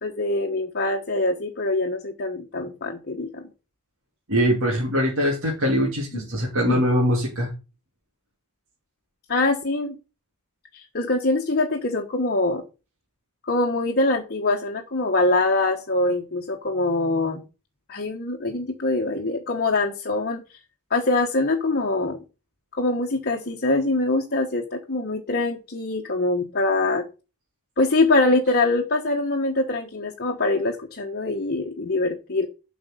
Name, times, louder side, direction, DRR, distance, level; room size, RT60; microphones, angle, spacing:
voice 1, 0.0-3.4 6.1-6.3 6.7-6.8 9.3-10.0 10.7-12.6 13.5-17.4 17.9-20.4 20.9-22.2 22.8-27.0 27.8-32.5, left 2 dB, 45° left, 1 dB, 1.2 m, -24 dB
voice 2, 4.3-7.5, equal, 60° right, -3 dB, 2.8 m, -22 dB
7.9 x 5.3 x 6.8 m, 0.31 s
head